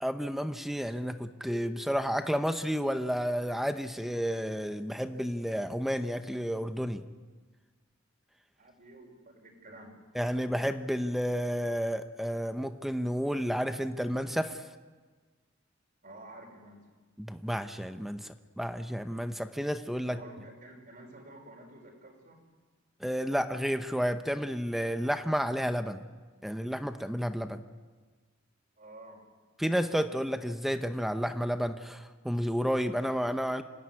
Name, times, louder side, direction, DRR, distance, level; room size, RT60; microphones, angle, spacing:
voice 1, 0.0-7.0 10.1-14.6 17.2-20.2 23.0-26.0 26.4-27.6 29.6-33.6, equal, ahead, 8 dB, 0.8 m, -31 dB
voice 2, 8.6-9.9 16.0-16.9 20.0-22.4 28.8-29.2, right 1 dB, 45° right, 0 dB, 5.4 m, -50 dB
26.5 x 17.5 x 9.8 m, 1.4 s
head